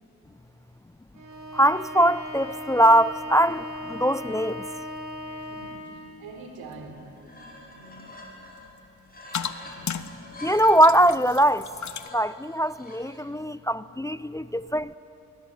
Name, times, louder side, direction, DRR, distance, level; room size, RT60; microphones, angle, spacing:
Bowed string instrument, 1.1-6.0, left 1 dB, 60° right, 6.7 m, -38 dB
sound 1, 1.3-12.1, left 7 dB, 55° left, 1.3 m, -41 dB
voice 1, 1.5-4.6 10.4-11.6 12.1-15.0, right 1 dB, 10° left, 0.4 m, -21 dB
voice 2, 5.5-8.3 13.1-13.6, right 3 dB, 85° right, 3.8 m, -46 dB
sound 2, 6.6-6.7 7.0-8.7 9.0-10.9 11.5-13.2, left 1 dB, 25° left, 6.5 m, -46 dB
21.5 x 20.5 x 9.0 m
supercardioid pair, 55°, 35 cm